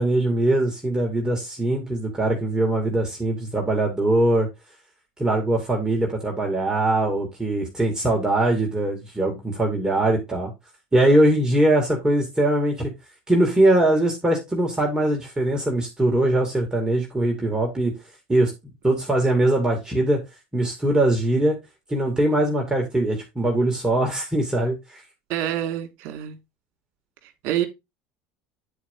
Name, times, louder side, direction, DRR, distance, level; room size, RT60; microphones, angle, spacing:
voice 1, 0.0-4.5 5.2-10.5 10.9-12.9 13.3-17.9 18.3-18.5 18.8-20.2 20.5-21.6 21.9-25.0, right 1 dB, 15° right, 2.6 m, -21 dB
voice 2, 25.3-26.4 27.2-27.7, right 12 dB, 65° right, 2.1 m, -27 dB
9.5 x 4.9 x 3.9 m
supercardioid pair, 95°, 5 cm